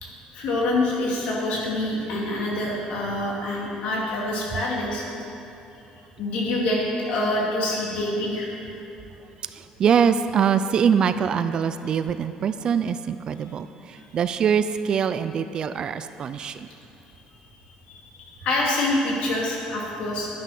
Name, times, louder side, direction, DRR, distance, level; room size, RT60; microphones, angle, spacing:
voice 1, 0.0-5.0 6.2-8.5 17.9-20.3, left 1 dB, 60° left, -3 dB, 2.8 m, -26 dB
voice 2, 9.4-16.7, right 7 dB, 35° right, 11 dB, 0.4 m, -23 dB
11.0 x 9.7 x 6.0 m, 2.7 s
cardioid pair, 165°, 2 cm